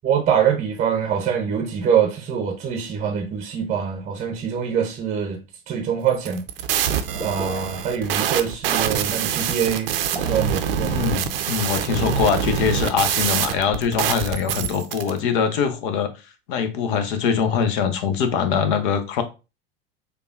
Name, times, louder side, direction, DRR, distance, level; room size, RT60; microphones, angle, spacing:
voice 1, 0.0-5.4 5.7-6.5 7.2-11.0, right 8 dB, 25° right, 0.7 m, -24 dB
sound 1, 6.1-15.1, right 9 dB, 65° right, 0.6 m, -25 dB
sound 2, 7.1-7.8 10.0-10.7 12.8-13.4, right 2 dB, 5° right, 1.1 m, -37 dB
voice 2, 10.8-19.2, left 7 dB, 55° left, 0.8 m, -23 dB
6.6 x 2.3 x 2.5 m
figure-of-eight pair, 80°, 32 cm